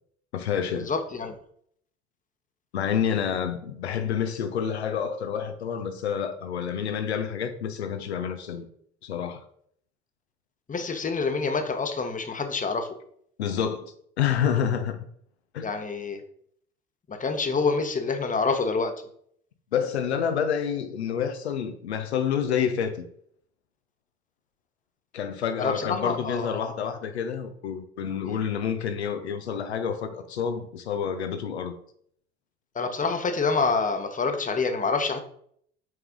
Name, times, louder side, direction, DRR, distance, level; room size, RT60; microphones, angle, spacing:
voice 1, 0.3-0.9 2.7-8.7 9.0-9.4 13.4-15.1 15.5-15.7 19.7-23.1 25.1-31.7, left 8 dB, 80° left, 0.7 m, -28 dB
voice 2, 0.9-1.4 10.7-13.0 15.6-16.2 17.1-18.9 25.6-26.6 32.7-35.3, left 4 dB, 25° left, 1.0 m, -27 dB
6.2 x 4.7 x 3.7 m
figure-of-eight pair, 55°, 32 cm